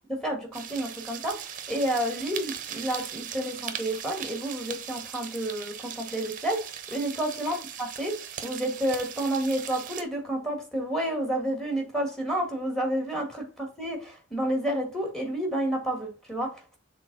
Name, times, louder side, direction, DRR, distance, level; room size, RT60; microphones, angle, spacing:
voice 1, 0.1-16.8, right 1 dB, ahead, 1.8 m, -30 dB
sound 1, 0.5-10.0, right 9 dB, 40° right, 0.8 m, -39 dB
6.3 x 3.9 x 4.0 m
head